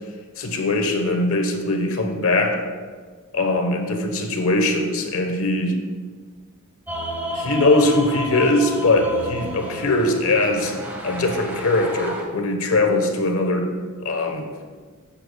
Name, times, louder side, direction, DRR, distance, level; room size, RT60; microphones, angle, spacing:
voice 1, 0.4-2.6 3.3-5.8 7.3-10.8 11.0-13.7 14.0-14.5, left 2 dB, 80° left, 5 dB, 1.1 m, -21 dB
sound 1, 6.9-12.2, right 1 dB, 10° right, 1.5 m, -31 dB
13.0 x 7.8 x 2.3 m, 1.5 s
head